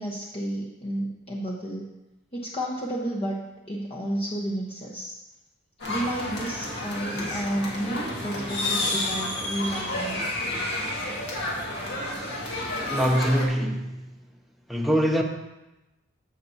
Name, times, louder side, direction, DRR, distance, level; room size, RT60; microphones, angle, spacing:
voice 1, 0.0-1.9 2.3-5.1 5.9-10.2, right 1 dB, 30° left, -4 dB, 1.0 m, -31 dB
sound 1, 5.8-13.5, left 1 dB, 60° left, 1.9 m, -30 dB
voice 2, 12.9-14.0 14.7-15.2, equal, ahead, 1 dB, 0.7 m, -23 dB
15.0 x 5.8 x 2.8 m, 0.97 s
head